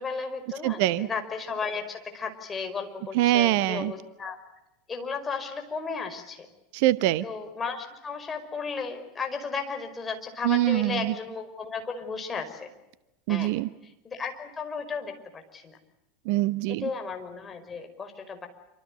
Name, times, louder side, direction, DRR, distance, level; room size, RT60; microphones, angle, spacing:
voice 1, 0.0-4.4 4.9-6.5 7.2-12.7 13.3-13.5 14.0-15.8 16.8-18.5, left 5 dB, 20° left, 5 dB, 5.4 m, -34 dB
voice 2, 0.6-1.1 3.1-3.9 6.7-7.3 10.4-11.1 13.3-13.7 16.2-16.9, right 15 dB, 55° right, 17 dB, 0.9 m, -24 dB
27.5 x 26.5 x 6.6 m, 0.92 s
figure-of-eight pair, 80°, 0 cm